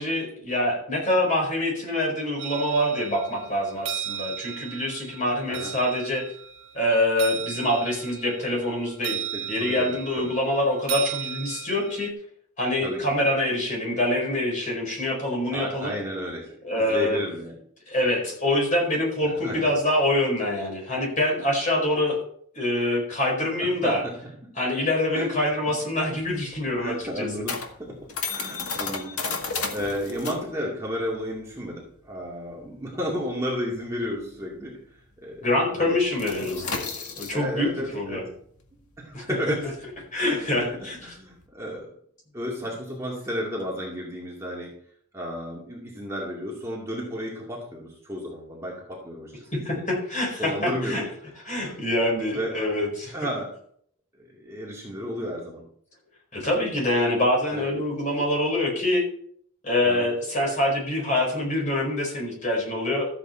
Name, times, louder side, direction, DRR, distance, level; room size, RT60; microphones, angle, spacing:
voice 1, 0.0-6.2 6.7-9.2 9.5-12.1 12.6-15.9 16.6-17.2 17.9-22.2 22.5-24.0 24.6-27.3 35.4-38.3 39.1-39.5 40.1-41.0 49.5-51.0 51.4-53.1 56.3-59.0 59.6-63.1, left 1 dB, 35° left, -1 dB, 4.8 m, -25 dB
sound 1, 2.4-12.1, right 9 dB, 70° right, 1.6 m, -36 dB
voice 2, 9.3-10.3 12.8-13.0 15.5-17.5 19.4-19.7 23.8-24.1 24.4-24.5 25.1-25.3 26.8-27.5 27.8-28.0 28.3-29.1 29.7-34.8 35.2-35.5 35.8-36.4 37.3-38.3 39.0-39.6 40.2-41.9 42.3-44.7 45.1-49.8 50.4-51.0 51.6-51.7 52.3-52.5 53.1-53.5 54.2-55.6 57.5-57.7 59.8-60.1, equal, 15° right, -4 dB, 2.2 m, -33 dB
sound 2, 25.9-34.9 35.2-35.4 35.7-41.5, left 4 dB, 90° left, 1.8 m, -34 dB
13.5 x 8.1 x 4.4 m, 0.62 s
head